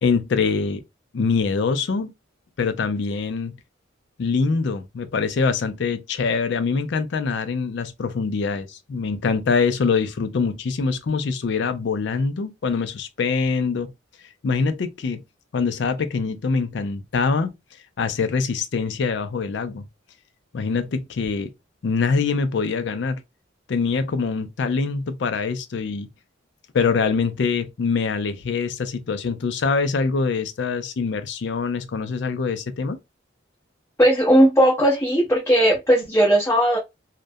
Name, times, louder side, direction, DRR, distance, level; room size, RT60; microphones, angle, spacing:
voice 1, 0.0-0.8 1.1-2.1 2.6-3.5 4.2-13.9 14.4-15.2 15.5-17.5 18.0-19.8 20.5-21.5 21.8-23.2 23.7-26.1 26.7-33.0, left 5 dB, 55° left, 0.4 m, -24 dB
voice 2, 34.0-36.8, equal, 10° left, 0.6 m, -17 dB
2.3 x 2.1 x 2.5 m
head